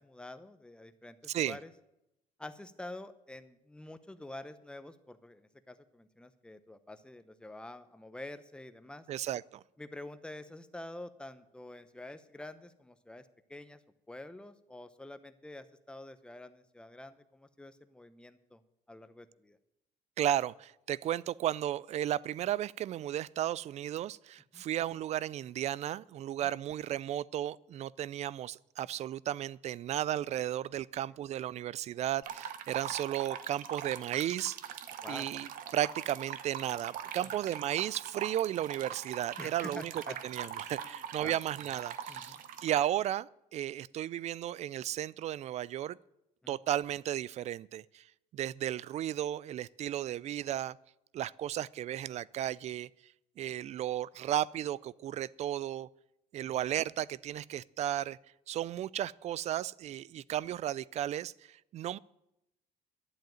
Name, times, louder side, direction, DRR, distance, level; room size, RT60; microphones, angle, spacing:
voice 1, 0.0-1.7 2.4-9.1 9.8-13.8 14.1-18.6 18.9-19.6 24.5-24.6 26.4-26.5 35.0-35.3 39.4-40.2 40.8-41.4 42.1-42.4 46.4-46.6 56.3-56.5, left 1 dB, 5° left, 11 dB, 0.7 m, -47 dB
voice 2, 9.1-9.6 20.2-34.8 35.1-46.0 46.5-48.1 48.3-50.8 51.1-52.9 53.4-55.9 56.3-58.2 58.5-62.0, right 12 dB, 45° right, 23 dB, 0.4 m, -34 dB
sound 1, 32.2-42.8, right 9 dB, 65° right, 1.0 m, -42 dB
11.5 x 7.8 x 9.2 m, 0.85 s
cardioid pair, 140°, 15 cm